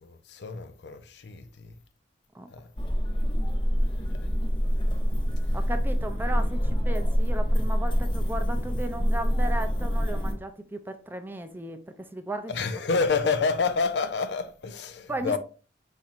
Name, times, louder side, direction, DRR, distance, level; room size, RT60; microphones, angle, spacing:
voice 1, 0.0-1.7 2.5-2.7 12.5-15.4, left 4 dB, 70° left, 0.5 m, -28 dB
sound 1, 2.8-10.3, equal, 30° left, 0.8 m, -25 dB
voice 2, 5.5-12.5 15.1-15.4, right 1 dB, 10° right, 0.4 m, -35 dB
4.3 x 4.3 x 2.4 m
head